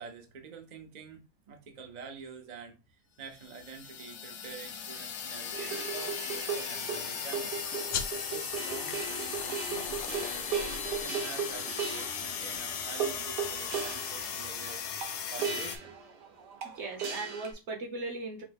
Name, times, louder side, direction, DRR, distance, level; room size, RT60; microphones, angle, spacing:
voice 1, 0.0-7.7 8.3-14.8 15.3-15.9, right 5 dB, 70° right, 0.4 m, -47 dB
sound 1, 3.3-15.8, left 7 dB, 65° left, 0.7 m, -37 dB
sound 2, 5.5-17.5, right 6 dB, 90° right, 1.4 m, -37 dB
sound 3, 7.9-13.0, left 7 dB, 85° left, 1.2 m, -42 dB
voice 2, 16.6-18.4, right 3 dB, 50° right, 1.0 m, -38 dB
5.3 x 2.0 x 3.4 m
omnidirectional pair, 1.7 m